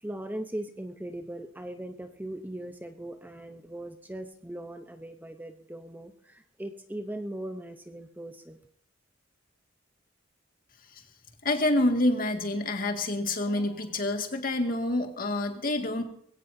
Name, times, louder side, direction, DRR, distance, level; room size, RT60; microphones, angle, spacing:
voice 1, 0.0-8.6, right 1 dB, 10° right, 6 dB, 0.7 m, -39 dB
voice 2, 11.4-16.0, left 1 dB, 45° left, 4 dB, 2.0 m, -27 dB
21.0 x 16.5 x 2.7 m, 0.64 s
head